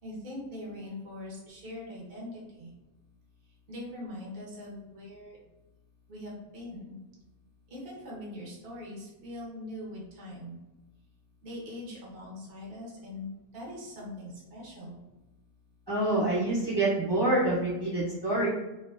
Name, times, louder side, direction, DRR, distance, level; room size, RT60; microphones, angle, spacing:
voice 1, 0.0-2.7 3.7-5.4 6.1-7.0 7.7-10.6 11.4-15.0, left 1 dB, 55° right, -5 dB, 0.6 m, -42 dB
voice 2, 15.9-18.5, right 2 dB, 20° right, -10 dB, 0.8 m, -26 dB
2.5 x 2.2 x 2.2 m, 1.0 s
omnidirectional pair, 1.6 m